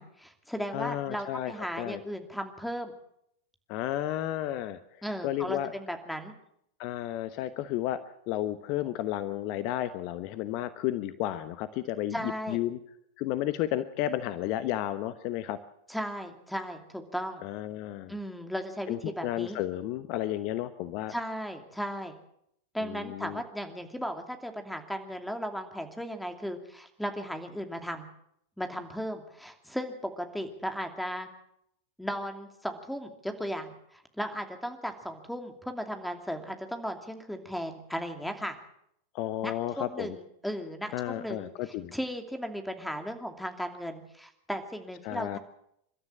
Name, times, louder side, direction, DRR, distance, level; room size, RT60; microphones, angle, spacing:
voice 1, 0.0-2.9 5.0-6.3 12.1-12.6 15.9-17.4 18.1-19.6 21.1-22.1 22.7-28.1 28.6-31.3 32.0-38.6 39.4-41.5 41.9-45.4, equal, ahead, 6 dB, 2.6 m, -36 dB
voice 2, 0.7-2.0 3.7-4.8 5.2-5.7 6.8-8.0 8.3-12.8 13.2-15.6 17.4-18.1 18.9-21.1 22.8-23.4 39.1-40.2 40.9-41.9 45.0-45.4, left 13 dB, 45° left, 13 dB, 1.0 m, -32 dB
28.5 x 13.0 x 7.5 m, 0.76 s
figure-of-eight pair, 90°, 0 cm